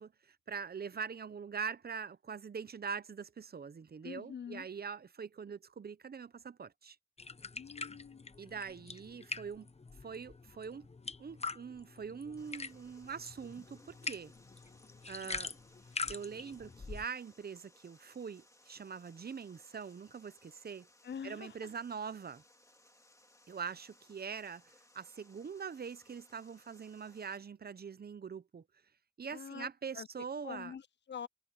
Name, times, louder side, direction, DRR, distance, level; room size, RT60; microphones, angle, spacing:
voice 1, 0.0-7.0 8.4-9.7 10.0-10.9 11.2-14.3 15.1-15.6 16.1-20.9 21.2-22.4 23.5-28.6 29.2-30.7, right 6 dB, 65° right, 0.6 m, -43 dB
voice 2, 4.0-4.7 7.5-8.3 21.0-21.7 29.3-29.7 29.9-30.1 30.4-31.3, left 7 dB, 90° left, 0.5 m, -45 dB
sound 1, 7.2-17.1, left 4 dB, 35° left, 0.8 m, -44 dB
Water, 12.4-27.4, left 1 dB, 20° left, 2.4 m, -65 dB
wide cardioid pair, 100°, 18 cm